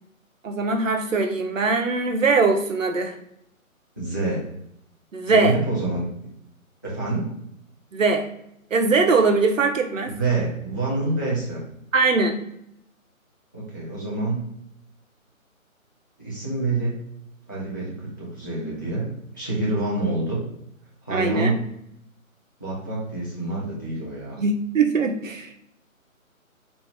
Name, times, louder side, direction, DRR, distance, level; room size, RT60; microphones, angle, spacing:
voice 1, 0.4-3.2 5.1-5.6 7.9-8.3 8.7-10.1 11.9-12.4 21.1-21.6 24.4-25.5, right 4 dB, 65° right, 6 dB, 0.9 m, -21 dB
voice 2, 4.0-4.5 5.3-6.1 6.8-7.3 10.1-11.6 13.5-14.4 16.2-17.0 17.5-19.1 19.3-20.4 21.0-21.6 22.6-24.4, right 2 dB, 15° left, -7 dB, 0.5 m, -27 dB
4.2 x 2.6 x 3.3 m, 0.76 s
figure-of-eight pair, 155°, 42 cm